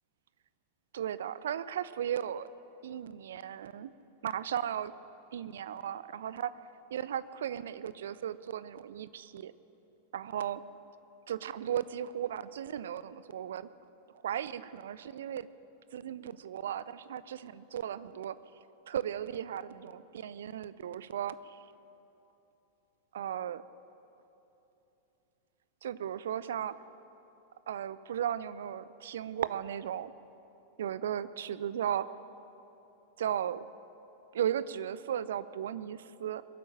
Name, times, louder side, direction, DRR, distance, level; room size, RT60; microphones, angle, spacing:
voice 1, 0.9-2.5 2.8-3.9 4.2-4.9 5.3-6.6 6.9-9.5 10.1-10.6 11.3-13.7 14.2-15.5 15.9-18.4 18.9-21.4 23.1-23.6 25.8-26.8 27.7-30.1 30.8-32.1 33.2-33.7 34.3-36.4, right 10 dB, 60° right, 16 dB, 0.5 m, -36 dB
22.0 x 8.4 x 7.7 m, 2.9 s
figure-of-eight pair, 90°, 0 cm